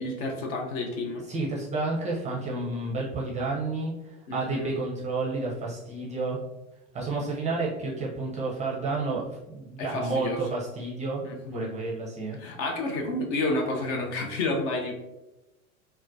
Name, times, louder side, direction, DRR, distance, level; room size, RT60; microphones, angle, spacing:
voice 1, 0.0-1.2 4.3-4.7 9.8-10.4 11.2-11.7 12.4-14.9, left 2 dB, 50° left, 2 dB, 0.7 m, -30 dB
voice 2, 1.3-6.4 6.9-11.2 11.5-12.4, right 3 dB, 15° right, -4 dB, 0.5 m, -30 dB
4.0 x 2.1 x 2.6 m, 0.99 s
hypercardioid pair, 90°, 44 cm